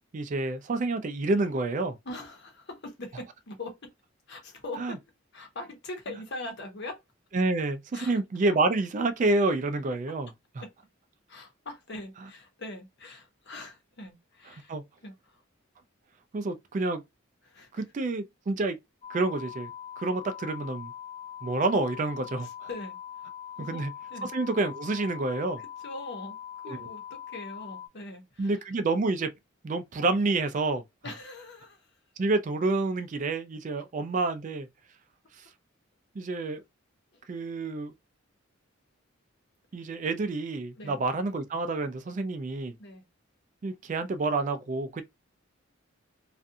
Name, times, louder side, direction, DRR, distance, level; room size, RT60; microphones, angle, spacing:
voice 1, 0.1-2.0 4.8-5.0 7.3-10.3 14.7-14.8 16.3-17.0 17.7-18.8 19.1-19.7 20.0-20.9 21.4-22.7 23.7-23.9 24.3-25.6 26.7-26.8 28.4-29.3 29.6-30.8 32.2-34.7 35.4-35.5 36.2-36.6 37.3-37.9 39.7-42.7 43.6-45.0, right 3 dB, 40° right, 0.3 m, -28 dB
voice 2, 2.0-3.9 4.3-5.0 5.3-7.0 7.9-8.1 10.6-10.7 11.3-14.7 15.0-15.4 17.4-17.8 22.4-23.3 23.6-23.8 24.1-24.3 25.6-28.6 31.0-31.9 37.1-37.2 40.8-41.0 42.8-43.0, left 2 dB, 55° left, 0.9 m, -42 dB
sound 1, 19.0-27.9, left 10 dB, 30° left, 0.4 m, -42 dB
2.5 x 2.3 x 2.6 m
head